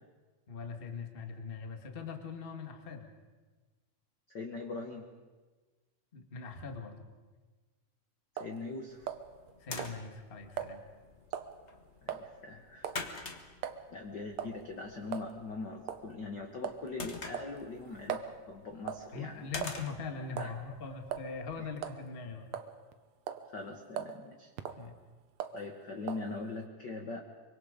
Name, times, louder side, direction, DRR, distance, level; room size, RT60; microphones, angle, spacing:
voice 1, 0.5-3.1 6.1-7.0 9.6-10.8 19.1-22.5 24.8-25.0, left 5 dB, 25° left, 5 dB, 1.2 m, -41 dB
voice 2, 4.3-5.0 8.3-9.1 12.0-13.4 13.9-19.5 20.4-20.5 20.8-21.0 23.5-24.5 25.5-27.2, left 3 dB, 50° left, 3 dB, 1.3 m, -42 dB
sound 1, 8.4-8.6 9.1-9.5 9.8-10.0 10.6-10.7 11.3-11.5 12.1-12.3 12.8-13.1 13.6-13.8 14.4-14.6 15.1-15.3 15.9-16.1 16.6-16.9 17.3-18.3 18.9-19.1 19.6-20.0 20.4-20.6 21.1-21.3 21.8-22.0 22.5-22.9 23.3-23.5 24.0-24.2 24.6-24.8 25.4-25.6 26.1-26.3, right 9 dB, 65° right, 1.9 m, -39 dB
sound 2, 8.9-22.0, left 3 dB, 75° left, 0.6 m, -48 dB
24.5 x 24.0 x 5.1 m, 1.3 s
omnidirectional pair, 3.9 m